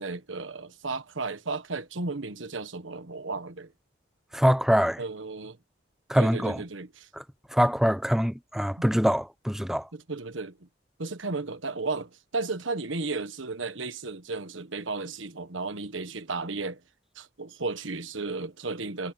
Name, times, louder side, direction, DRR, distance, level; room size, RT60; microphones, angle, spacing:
voice 1, 0.0-3.7 5.0-5.6 6.1-7.1 9.9-10.7 11.0-16.8 17.1-19.1, right 3 dB, 85° right, 1.4 m, -34 dB
voice 2, 4.3-5.0 6.1-6.6 7.1-7.2 7.5-9.9, equal, ahead, 0.8 m, -24 dB
head